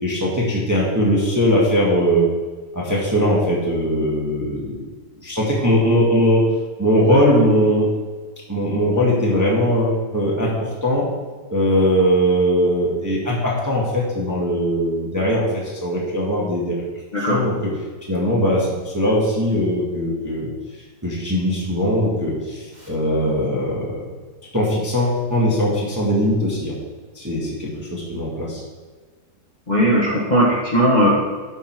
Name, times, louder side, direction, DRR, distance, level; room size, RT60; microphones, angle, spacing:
voice 1, 0.0-2.3 2.7-4.9 5.2-6.5 6.8-7.9 8.5-11.1 11.5-16.8 17.2-17.5 18.1-20.5 21.0-24.1 24.5-26.7 27.1-28.6, equal, 10° right, -5 dB, 1.5 m, -20 dB
voice 2, 29.7-31.1, equal, 25° left, -5 dB, 1.7 m, -17 dB
11.0 x 5.5 x 4.6 m, 1.4 s
omnidirectional pair, 2.1 m